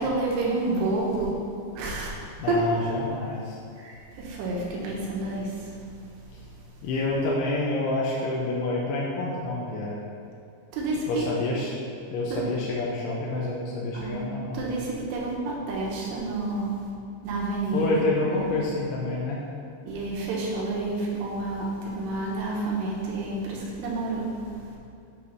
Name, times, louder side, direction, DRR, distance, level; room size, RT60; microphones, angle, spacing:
voice 1, 0.0-1.3 1.8-2.1 2.5-2.6 3.8-5.8 10.7-11.3 12.3-12.4 13.9-14.2 14.5-16.7 17.2-18.0 18.3-18.5 19.9-24.6, right 2 dB, 85° right, -4 dB, 3.7 m, -29 dB
voice 2, 2.4-3.6 6.8-10.0 11.1-11.7 12.1-14.6 17.7-19.4, left 2 dB, 80° left, -4 dB, 2.5 m, -28 dB
9.4 x 3.3 x 5.7 m, 2.5 s
omnidirectional pair, 5.6 m